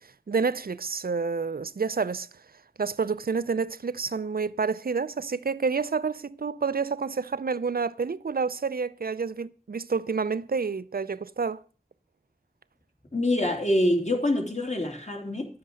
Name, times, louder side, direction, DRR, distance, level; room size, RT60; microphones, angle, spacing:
voice 1, 0.3-2.3 2.8-11.6, right 5 dB, 90° right, 0.5 m, -29 dB
voice 2, 13.1-15.5, left 1 dB, 50° left, 3.1 m, -25 dB
11.0 x 7.9 x 6.4 m
wide cardioid pair, 45°, 15 cm